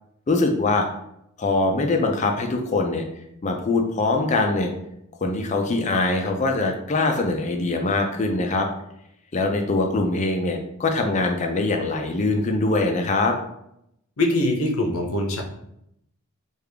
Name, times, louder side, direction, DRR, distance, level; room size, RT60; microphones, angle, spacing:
voice 1, 0.3-0.9 1.4-3.0 3.4-4.7 5.2-8.7 9.3-13.4, left 2 dB, 30° left, 4 dB, 0.4 m, -23 dB
voice 2, 14.2-15.4, left 1 dB, 70° left, 1 dB, 0.6 m, -23 dB
3.3 x 2.4 x 3.3 m, 0.78 s
head